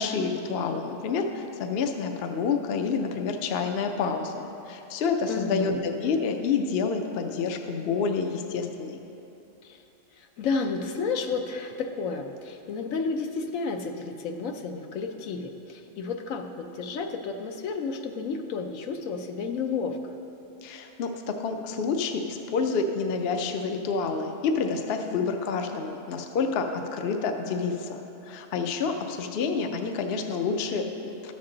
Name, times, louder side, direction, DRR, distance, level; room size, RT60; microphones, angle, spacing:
voice 1, 0.0-9.0 20.6-31.3, left 5 dB, 55° left, 5 dB, 0.7 m, -28 dB
voice 2, 5.3-5.8 9.6-9.8 10.1-20.0, left 4 dB, 75° left, 4 dB, 1.0 m, -31 dB
12.5 x 7.4 x 3.8 m, 2.9 s
omnidirectional pair, 1.4 m